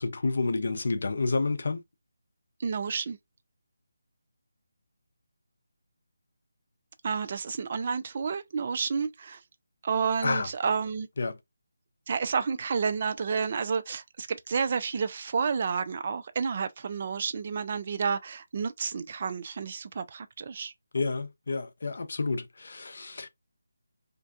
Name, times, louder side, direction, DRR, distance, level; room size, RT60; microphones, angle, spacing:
voice 1, 0.0-1.8 10.2-10.5 11.2-11.4 20.9-23.3, left 3 dB, 60° left, 0.5 m, -29 dB
voice 2, 2.6-3.2 7.0-9.4 9.8-11.1 12.1-20.7, right 5 dB, 40° right, 0.3 m, -30 dB
2.5 x 2.1 x 2.4 m
figure-of-eight pair, 160°, 0 cm